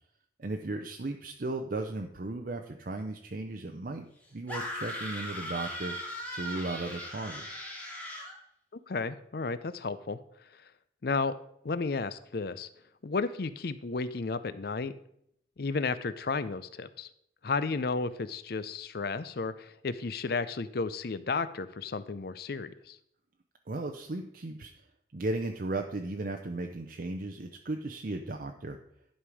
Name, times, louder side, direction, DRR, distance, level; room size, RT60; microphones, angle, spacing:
voice 1, 0.4-4.1 4.3-6.0 6.3-7.6 23.7-24.7 25.1-28.8, right 2 dB, 45° right, 4 dB, 0.6 m, -36 dB
sound 1, 4.5-8.4, equal, 10° left, 1.5 m, -38 dB
voice 2, 8.9-10.2 11.0-11.4 11.6-12.7 13.0-14.9 15.6-17.1 17.4-23.0, left 4 dB, 55° left, 14 dB, 0.5 m, -33 dB
11.5 x 5.5 x 4.8 m, 0.74 s
head